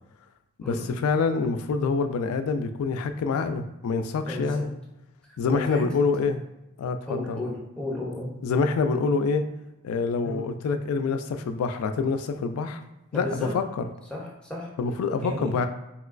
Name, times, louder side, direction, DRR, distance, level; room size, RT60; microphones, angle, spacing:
voice 1, 0.7-4.7 5.4-6.4 6.8-7.4 8.4-9.4 9.8-12.8 13.1-13.9 14.8-15.7, left 4 dB, 80° left, 9 dB, 0.3 m, -26 dB
voice 2, 4.3-4.7 5.5-5.8 7.1-8.4 10.2-10.4 13.1-13.5 14.1-14.7 15.2-15.6, left 1 dB, 5° left, -3 dB, 0.5 m, -33 dB
3.0 x 2.9 x 2.4 m, 0.94 s
head